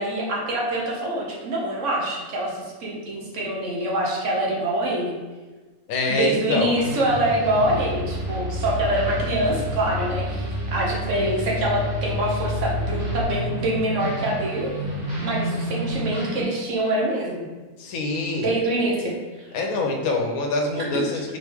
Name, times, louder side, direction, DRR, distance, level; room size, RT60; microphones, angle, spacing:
voice 1, 0.0-5.1 6.1-14.7 15.2-17.5 18.4-19.1 20.7-21.0, right 1 dB, 60° right, -2 dB, 1.1 m, -25 dB
voice 2, 5.9-6.8 17.8-18.5 19.5-21.2, left 2 dB, 85° left, 2 dB, 1.1 m, -24 dB
sound 1, 6.8-16.4, equal, 90° right, 1.6 m, -30 dB
sound 2, 7.3-13.2, equal, 50° left, 1.4 m, -33 dB
3.8 x 3.2 x 3.4 m, 1.3 s
omnidirectional pair, 1.5 m